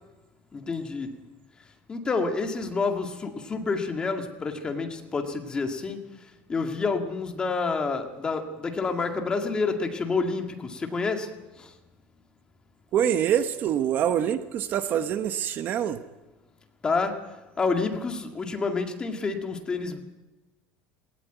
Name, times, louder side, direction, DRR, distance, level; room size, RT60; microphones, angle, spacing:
voice 1, 0.5-1.1 1.9-6.0 6.5-11.3 11.6-11.7 16.8-17.1 17.6-20.0, left 4 dB, 15° left, 4 dB, 2.0 m, -28 dB
voice 2, 12.9-16.0, right 9 dB, 40° right, 10 dB, 1.0 m, -25 dB
18.5 x 18.0 x 9.2 m, 1.1 s
cardioid pair, 155°, 5 cm